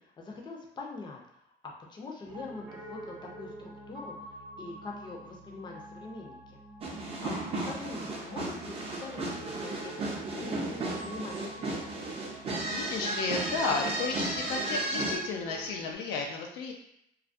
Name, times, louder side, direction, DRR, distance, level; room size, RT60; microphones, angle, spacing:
voice 1, 0.0-4.1 4.6-6.6 7.0-7.4 7.6-9.9 10.3-11.9, left 3 dB, 25° left, 0 dB, 0.5 m, -43 dB
Piano, 2.2-15.9, right 1 dB, 80° right, 0.7 m, -47 dB
sound 1, 6.8-15.2, right 2 dB, 35° right, 0.5 m, -34 dB
voice 2, 12.6-16.7, left 4 dB, 85° left, 1 dB, 0.4 m, -33 dB
2.3 x 2.1 x 2.5 m, 0.77 s
cardioid pair, 110°, 17 cm